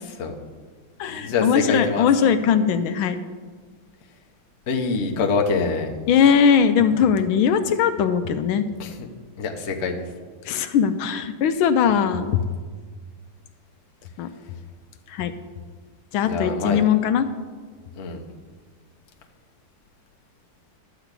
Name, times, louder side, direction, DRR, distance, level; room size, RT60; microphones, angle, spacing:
voice 1, 0.0-0.3 1.1-2.1 4.7-6.0 8.8-9.1 9.4-10.1 16.3-16.8 18.0-18.2, left 4 dB, 45° left, 2 dB, 1.0 m, -25 dB
voice 2, 1.0-3.2 6.1-8.6 10.5-12.4 14.2-14.3 15.1-15.3 16.1-17.3, left 7 dB, 80° left, 10 dB, 1.4 m, -20 dB
12.0 x 5.0 x 8.1 m, 1.5 s
omnidirectional pair, 2.3 m